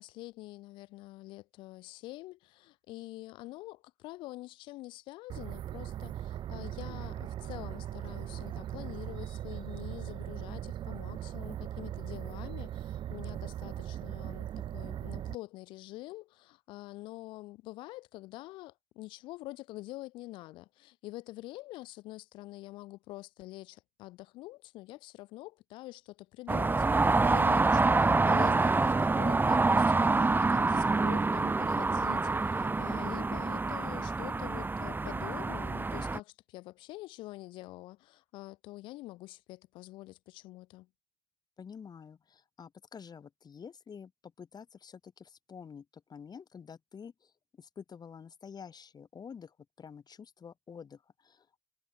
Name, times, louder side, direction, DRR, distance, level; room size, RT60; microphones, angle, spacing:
voice 1, 0.0-40.9, left 19 dB, 80° left, 7.0 m, -46 dB
sound 1, 5.3-15.4, right 11 dB, 70° right, 3.3 m, -39 dB
sound 2, 26.5-36.2, right 3 dB, 25° right, 0.7 m, -27 dB
voice 2, 41.6-51.6, left 6 dB, 55° left, 6.0 m, -49 dB
hypercardioid pair, 40°, 8 cm